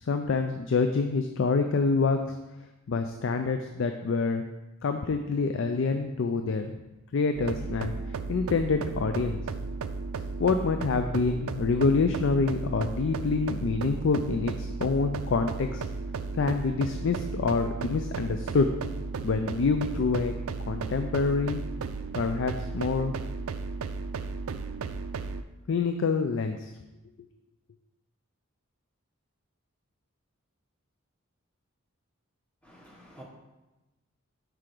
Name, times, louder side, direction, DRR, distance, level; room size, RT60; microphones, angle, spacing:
voice 1, 0.0-2.3 2.9-4.5 4.8-6.7 7.1-7.9 8.3-9.4 10.4-15.8 16.4-18.7 19.2-20.3 20.7-21.6 22.1-23.1 25.7-26.7, left 4 dB, 60° left, 7 dB, 0.4 m, -26 dB
sound 1, 7.3-25.4, right 4 dB, 75° right, 0.4 m, -35 dB
voice 2, 32.6-33.2, equal, 5° left, -5 dB, 1.3 m, -50 dB
5.0 x 4.7 x 5.9 m, 1.0 s
head